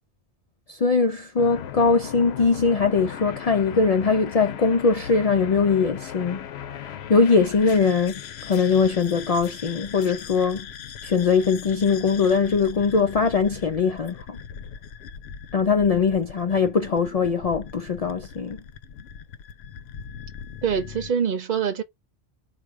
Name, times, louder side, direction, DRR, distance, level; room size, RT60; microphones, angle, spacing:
voice 1, 0.7-6.5 6.7-10.7 11.0-14.4 15.5-18.6, left 5 dB, 50° left, 0.5 m, -21 dB
sound 1, 1.4-21.1, left 8 dB, 80° left, 0.8 m, -39 dB
voice 2, 20.6-21.8, right 7 dB, 55° right, 0.9 m, -24 dB
4.3 x 2.3 x 4.6 m
omnidirectional pair, 1.1 m